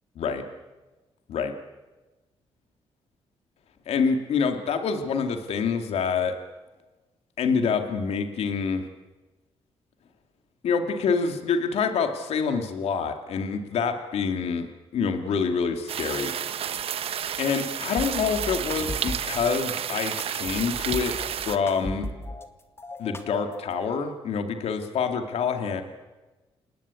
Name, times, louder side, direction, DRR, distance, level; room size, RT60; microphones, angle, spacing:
voice 1, 3.9-6.3 7.4-8.8 10.6-16.3 17.4-21.1 21.4-22.1 23.0-25.8, left 5 dB, 80° left, 6 dB, 2.6 m, -26 dB
sound 1, 15.9-21.6, right 9 dB, 65° right, 1.1 m, -31 dB
sound 2, 18.0-19.5 20.2-22.5 22.8-23.8, left 2 dB, 25° left, 2.1 m, -37 dB
29.5 x 19.0 x 8.5 m, 1.2 s
cardioid pair, 110°, 11 cm